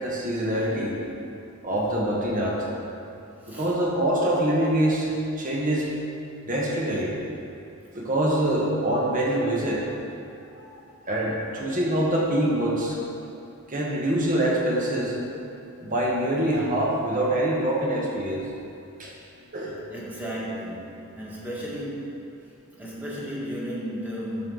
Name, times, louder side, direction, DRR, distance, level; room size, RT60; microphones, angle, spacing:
voice 1, 0.0-1.0 1.6-2.7 3.5-5.1 5.4-5.9 6.5-7.1 7.9-9.9 10.6-10.8 11.1-13.0 13.7-15.1 15.8-18.4 19.0-19.1 19.5-19.7, right 1 dB, 40° right, -3 dB, 1.4 m, -25 dB
voice 2, 3.4-3.8 19.9-22.4 22.7-24.4, equal, 10° right, -7 dB, 1.7 m, -34 dB
10.5 x 6.6 x 4.0 m, 2.7 s
head